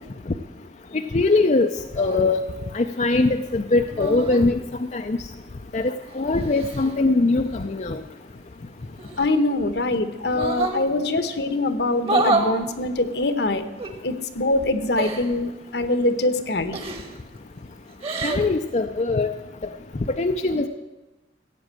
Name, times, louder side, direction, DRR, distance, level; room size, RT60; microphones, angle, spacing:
voice 1, 0.9-2.4 2.7-5.2 5.7-8.0 18.2-19.3 20.2-20.7, left 3 dB, 40° left, 6 dB, 0.5 m, -22 dB
sound 1, 2.0-2.2 3.9-4.5 5.8-6.9 9.0-9.7 10.2-10.8 12.0-12.5 13.8-13.9 15.0-15.3 16.7-17.2 17.9-18.4, right 2 dB, 35° right, 1.5 m, -27 dB
voice 2, 9.2-13.6 14.0-16.8, left 2 dB, 70° left, 10 dB, 1.1 m, -23 dB
15.0 x 8.6 x 7.5 m, 1.1 s
head